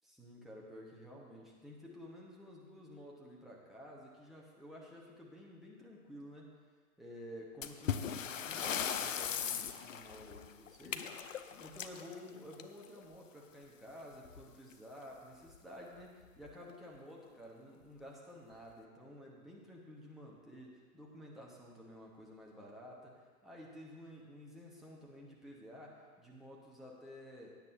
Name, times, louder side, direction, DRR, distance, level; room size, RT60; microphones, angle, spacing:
voice 1, 0.0-6.5 7.0-11.2 11.6-27.5, equal, ahead, -4 dB, 1.2 m, -52 dB
sound 1, 7.6-13.0 14.2-14.4 14.7-14.8 15.5-15.6 16.2-16.5, left 8 dB, 55° left, 0.8 m, -39 dB
16.5 x 9.3 x 2.8 m, 1.5 s
figure-of-eight pair, 120°, 45 cm